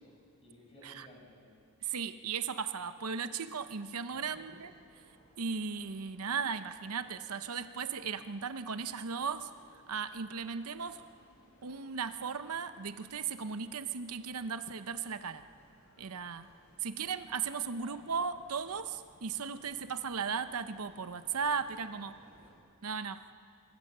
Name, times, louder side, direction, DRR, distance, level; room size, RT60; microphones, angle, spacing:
voice 1, 0.0-1.5 4.1-4.5 17.8-18.1, left 1 dB, 25° left, -2 dB, 6.9 m, -57 dB
voice 2, 1.8-4.7 5.4-9.5 9.9-11.0 11.6-15.5 16.0-16.5 16.8-22.2 22.8-23.2, right 6 dB, 80° right, 11 dB, 0.8 m, -36 dB
sound 1, 3.9-22.5, equal, 65° left, 7.8 m, -63 dB
24.0 x 24.0 x 6.7 m, 2.2 s
head